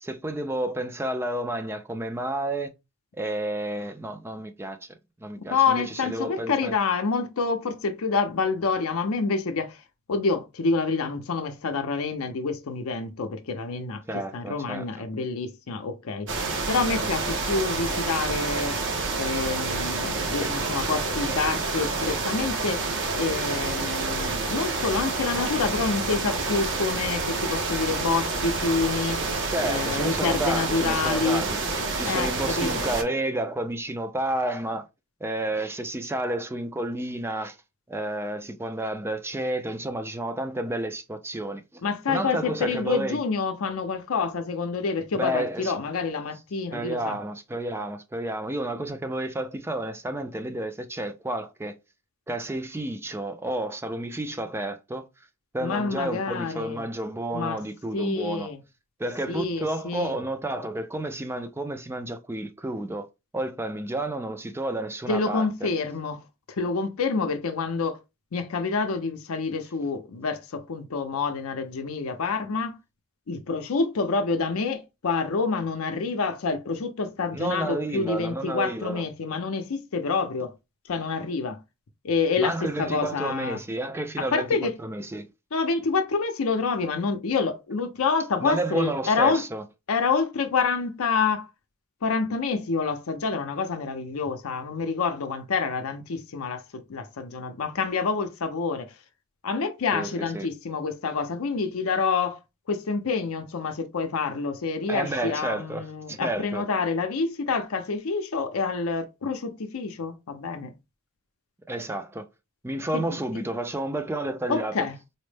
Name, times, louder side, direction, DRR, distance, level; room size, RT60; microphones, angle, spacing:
voice 1, 0.0-2.7 3.1-4.8 5.2-6.7 14.1-15.0 20.4-20.5 29.5-31.5 32.0-34.9 35.2-37.6 37.9-41.8 42.1-43.2 45.1-45.7 46.7-51.8 52.3-55.1 55.5-58.5 59.0-63.1 63.3-65.7 77.3-79.0 82.4-84.5 84.8-85.3 88.4-89.6 99.9-100.5 104.9-106.7 111.7-112.2 112.6-114.9, right 1 dB, 10° right, 0.3 m, -31 dB
voice 2, 5.4-9.8 10.1-16.3 16.7-18.8 19.2-22.8 23.2-29.2 29.6-31.4 32.1-32.8 41.8-47.2 55.6-56.8 57.3-57.6 57.9-58.6 59.3-60.1 65.1-68.0 68.3-72.8 73.3-80.5 80.9-81.6 82.0-83.6 84.2-84.7 85.5-89.4 89.9-91.5 92.0-98.9 99.4-102.4 102.7-110.7 112.9-113.4 114.5-115.0, left 4 dB, 70° left, 0.5 m, -27 dB
sound 1, 16.3-33.0, right 3 dB, 55° right, 0.8 m, -28 dB
4.2 x 2.1 x 3.2 m
head